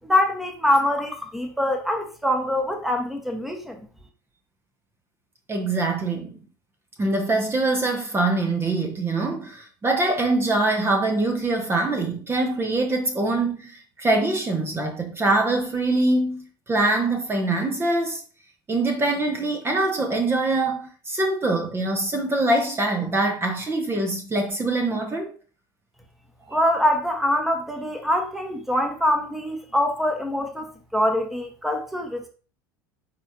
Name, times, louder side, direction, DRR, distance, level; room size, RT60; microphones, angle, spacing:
voice 1, 0.0-3.9 26.5-32.3, left 1 dB, ahead, 1.2 m, -24 dB
voice 2, 5.5-6.3 7.0-18.2 18.7-25.3 26.5-26.6, right 2 dB, 20° right, 1.1 m, -24 dB
10.0 x 3.5 x 2.8 m
figure-of-eight pair, 75°, 11 cm